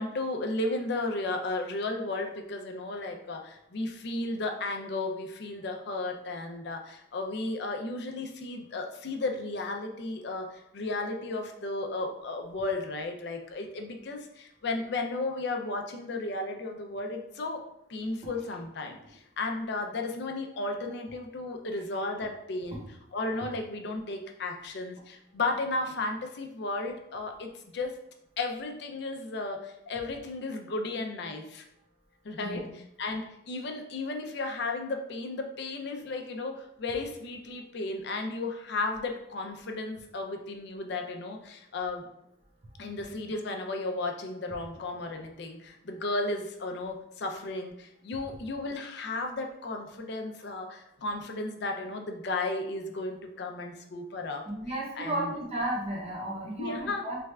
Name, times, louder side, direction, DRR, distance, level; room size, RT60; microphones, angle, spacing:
voice 1, 0.0-17.6 17.9-22.8 23.1-28.0 28.4-31.6 32.2-42.1 42.8-54.5 55.0-55.3 56.6-57.1, left 2 dB, 60° left, 3 dB, 0.5 m, -34 dB
voice 2, 54.4-57.2, right 1 dB, 35° right, -3 dB, 0.8 m, -33 dB
3.3 x 2.3 x 3.2 m, 0.76 s
head